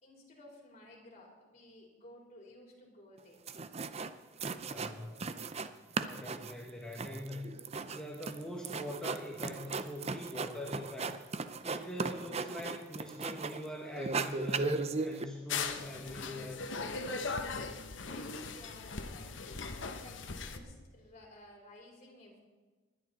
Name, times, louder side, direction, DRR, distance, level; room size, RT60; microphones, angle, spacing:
voice 1, 0.0-3.4 17.9-22.4, left 1 dB, 35° left, -1 dB, 3.6 m, -55 dB
sound 1, 3.2-3.3 3.5-4.1 4.4-5.7 5.9-13.7 14.0-15.2, right 4 dB, 35° right, 0.6 m, -37 dB
voice 2, 4.5-5.4 6.0-7.5 7.8-11.2 11.6-16.7, left 1 dB, 5° left, -2 dB, 1.5 m, -43 dB
sound 2, 15.5-20.6, left 4 dB, 75° left, 1.1 m, -39 dB
20.0 x 11.0 x 4.1 m, 1.3 s
head